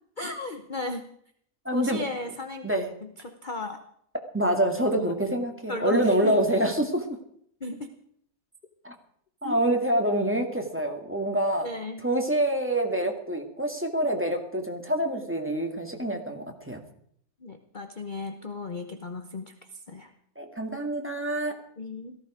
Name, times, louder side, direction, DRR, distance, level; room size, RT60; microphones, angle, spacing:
voice 1, 0.2-1.0 1.7-2.7 3.2-3.8 5.0-5.1 5.7-6.3 7.6-7.9 9.4-9.6 11.6-12.0 17.4-19.5 19.9-20.1 21.8-22.2, left 3 dB, 35° left, 7 dB, 1.0 m, -35 dB
voice 2, 1.7-2.0 2.6-2.9 4.3-7.1 8.8-8.9 9.4-11.7 12.0-16.8 20.4-21.6, right 1 dB, 10° right, 3 dB, 1.9 m, -26 dB
17.5 x 14.5 x 5.0 m, 0.66 s
omnidirectional pair, 1.6 m